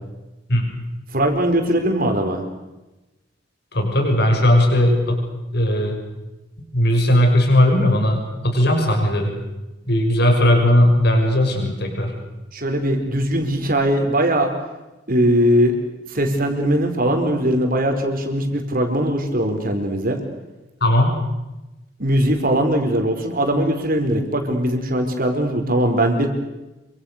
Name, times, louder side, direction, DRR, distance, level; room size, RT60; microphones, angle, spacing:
voice 1, 1.1-2.4 12.5-14.5 15.1-15.8 16.1-20.2 22.0-26.3, right 1 dB, 50° right, 5 dB, 4.8 m, -20 dB
voice 2, 3.7-5.2 5.5-6.0 6.7-9.3 9.9-12.1 20.8-21.1, left 1 dB, 60° left, 3 dB, 6.8 m, -17 dB
28.0 x 25.5 x 6.8 m, 1.0 s
head